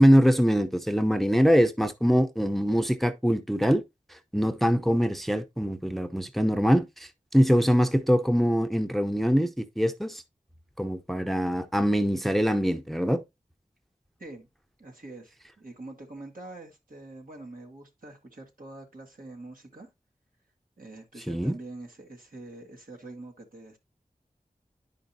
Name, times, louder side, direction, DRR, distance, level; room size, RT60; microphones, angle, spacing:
voice 1, 0.0-3.8 4.3-10.2 10.8-13.2 21.3-21.6, equal, ahead, 0.7 m, -23 dB
voice 2, 14.8-19.9 20.8-23.8, right 2 dB, 75° right, 1.8 m, -45 dB
10.5 x 5.1 x 2.7 m
wide cardioid pair, 45°, 15 cm